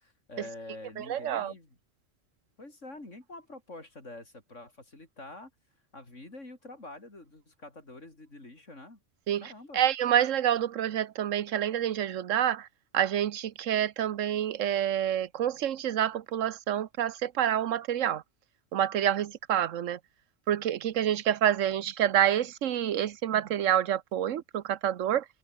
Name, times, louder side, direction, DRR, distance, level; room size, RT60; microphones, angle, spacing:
voice 1, 0.0-1.8 2.6-5.5 5.9-9.0 9.4-9.8, left 2 dB, 75° left, 5.7 m, -46 dB
voice 2, 1.0-1.5 9.3-12.7 12.9-18.2 18.7-20.0 20.5-25.3, right 10 dB, 85° right, 1.2 m, -28 dB
open air
omnidirectional pair, 1.3 m